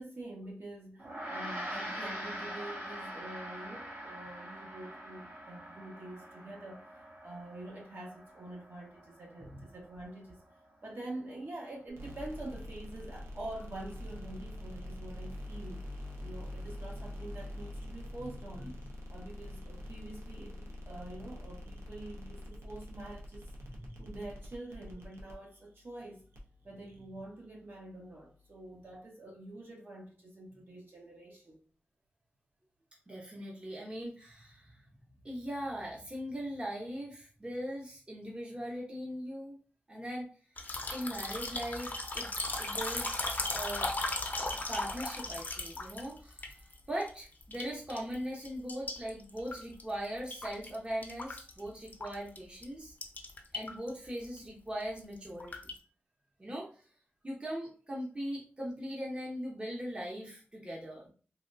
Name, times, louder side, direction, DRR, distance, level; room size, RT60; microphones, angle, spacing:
voice 1, 0.0-10.4 10.8-15.8 16.2-18.7 19.1-23.5 24.0-26.2 26.6-31.6, right 1 dB, 55° right, 1.1 m, -46 dB
Gong, 1.0-10.6, equal, 70° right, 1.3 m, -44 dB
sound 1, 11.9-28.9, left 1 dB, 90° right, 0.7 m, -46 dB
voice 2, 23.6-24.0 33.1-34.8 35.2-39.6 39.9-40.3 40.6-42.3 42.6-43.9 44.4-46.5 46.9-52.9 53.5-55.5 56.4-56.7 57.2-61.1, equal, 25° right, 0.8 m, -40 dB
sound 2, 40.6-47.1 47.4-48.2 48.4-50.8 51.0-52.4 52.6-52.7 53.0-53.9 54.2-54.4 54.8-55.8, left 2 dB, 40° left, 0.6 m, -37 dB
3.4 x 2.3 x 2.5 m
wide cardioid pair, 85°, 4 cm